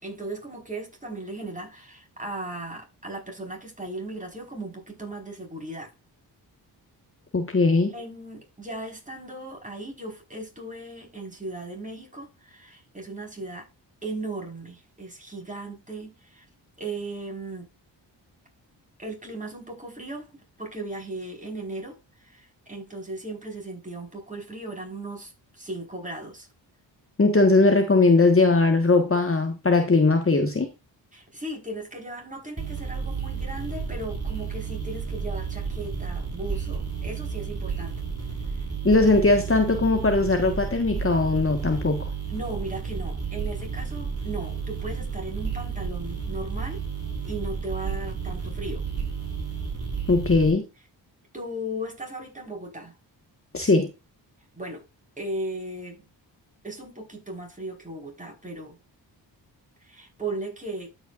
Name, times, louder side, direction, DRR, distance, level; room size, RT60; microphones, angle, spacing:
voice 1, 0.0-5.9 7.9-13.7 14.0-16.4 16.8-17.7 19.0-26.5 31.1-38.0 42.3-46.8 47.2-48.8 51.3-52.9 54.5-54.8 55.2-56.1 56.6-58.8 59.8-60.9, right 2 dB, 15° right, 5.0 m, -37 dB
voice 2, 7.3-7.9 27.2-30.7 38.8-42.1 50.1-50.6 53.5-53.9, left 3 dB, 30° left, 1.6 m, -20 dB
sound 1, 32.6-50.5, right 5 dB, 35° right, 4.7 m, -32 dB
12.5 x 5.7 x 2.6 m
cardioid pair, 55°, 45 cm